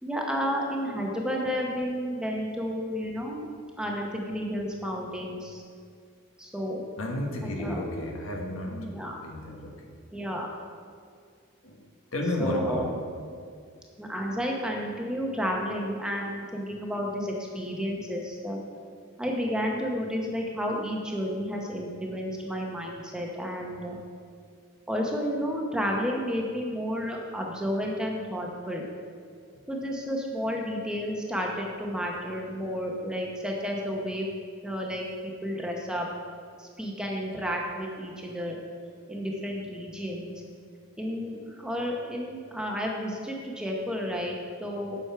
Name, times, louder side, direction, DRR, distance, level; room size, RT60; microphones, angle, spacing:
voice 1, 0.0-3.5 3.8-5.6 6.4-6.8 7.4-7.8 8.7-9.2 10.1-10.5 12.4-12.9 14.0-18.6 19.2-24.0 24.9-28.9 29.7-34.3 34.6-36.1 36.6-38.6 39.1-40.3 41.0-45.0, equal, 5° right, -1 dB, 0.8 m, -31 dB
voice 2, 7.0-8.9 9.2-9.7 11.6-11.8 12.1-12.9, left 1 dB, 75° left, 1 dB, 1.3 m, -32 dB
7.7 x 6.3 x 5.7 m, 2.2 s
head